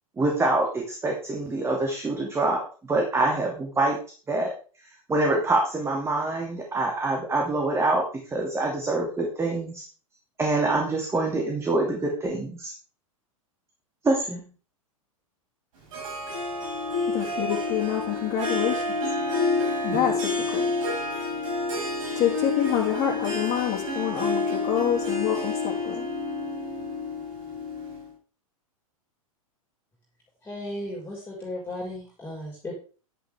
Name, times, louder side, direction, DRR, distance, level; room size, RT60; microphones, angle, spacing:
voice 1, 0.2-4.0 4.3-4.5 5.1-9.8 10.4-12.7 14.0-14.5 19.9-20.1, right 2 dB, 15° right, 1 dB, 2.6 m, -25 dB
Harp, 15.9-28.1, left 3 dB, 65° right, 6.4 m, -29 dB
voice 2, 17.1-18.9 19.8-20.7 22.1-26.1, left 10 dB, 35° left, -5 dB, 2.8 m, -27 dB
voice 3, 30.4-32.7, left 1 dB, 10° left, -2 dB, 4.9 m, -35 dB
11.0 x 10.5 x 3.6 m, 0.38 s
figure-of-eight pair, 100°, 18 cm